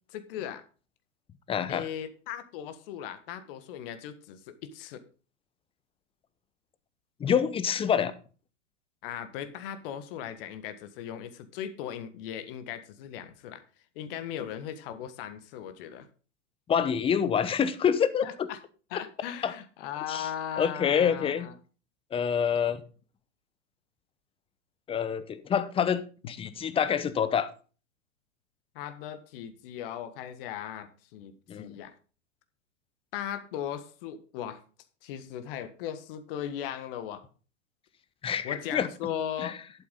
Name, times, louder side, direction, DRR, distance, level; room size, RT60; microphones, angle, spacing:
voice 1, 0.1-0.6 1.7-5.0 9.0-13.6 13.9-16.1 18.2-18.6 18.9-21.5 28.7-31.9 33.1-34.6 35.0-37.2 38.4-39.6, left 10 dB, 45° left, 11 dB, 1.4 m, -38 dB
voice 2, 1.5-1.9 7.2-8.1 16.7-18.5 19.4-19.5 20.1-20.3 20.6-21.5 22.1-22.8 24.9-26.0 26.3-27.5 31.5-31.7 38.2-38.9 39.4-39.5, left 7 dB, 15° left, 14 dB, 0.8 m, -26 dB
11.5 x 8.4 x 3.8 m, 0.36 s
figure-of-eight pair, 105°, 38 cm